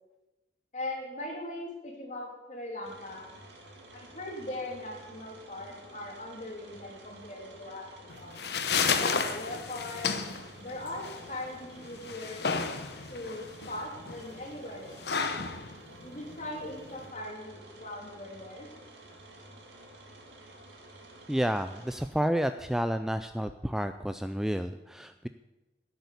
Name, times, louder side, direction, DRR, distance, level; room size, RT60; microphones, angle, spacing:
voice 1, 0.7-3.3 3.9-8.3 8.9-10.2 10.6-12.4 13.1-15.0 16.0-18.7, left 1 dB, 45° left, 0 dB, 3.0 m, -40 dB
sound 1, 2.8-22.1, right 1 dB, 80° right, 2.5 m, -51 dB
sound 2, 8.1-17.1, left 5 dB, 65° left, 0.9 m, -33 dB
voice 2, 21.3-25.3, equal, 5° right, 9 dB, 0.3 m, -30 dB
11.0 x 8.1 x 8.1 m, 1.1 s
head